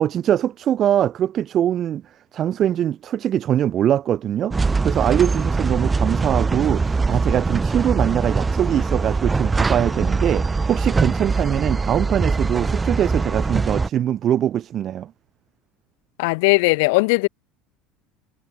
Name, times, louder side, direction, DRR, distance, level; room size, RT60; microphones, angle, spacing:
voice 1, 0.0-2.0 2.3-15.1, right 10 dB, 40° right, 1.2 m, -22 dB
sound 1, 4.5-13.9, right 4 dB, 15° right, 0.8 m, -22 dB
voice 2, 16.2-17.3, left 28 dB, 80° left, 1.9 m, -18 dB
cardioid pair, 135°, 0 cm